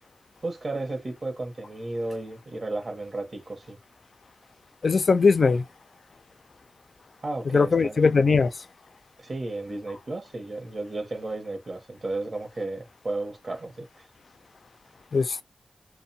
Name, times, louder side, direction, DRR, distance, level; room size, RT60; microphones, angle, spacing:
voice 1, 0.4-3.8 7.2-8.0 9.2-13.9, right 2 dB, 55° right, 0.8 m, -33 dB
voice 2, 4.8-5.6 7.5-8.5 15.1-15.4, left 4 dB, 65° left, 0.3 m, -20 dB
2.7 x 2.1 x 2.7 m
cardioid pair, 45°, 0 cm